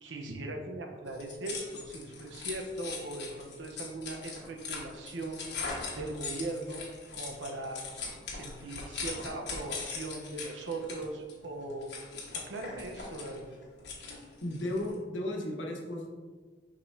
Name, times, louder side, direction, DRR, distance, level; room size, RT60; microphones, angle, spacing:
voice 1, 0.0-5.4 6.0-6.8 7.1-7.8 8.3-11.9 12.3-13.4, right 2 dB, 85° right, 2 dB, 1.0 m, -39 dB
sound 1, 1.1-15.0, left 4 dB, 60° left, 1.4 m, -41 dB
voice 2, 14.4-16.1, left 1 dB, 90° left, -1 dB, 1.2 m, -34 dB
6.9 x 5.3 x 2.7 m, 1.5 s
head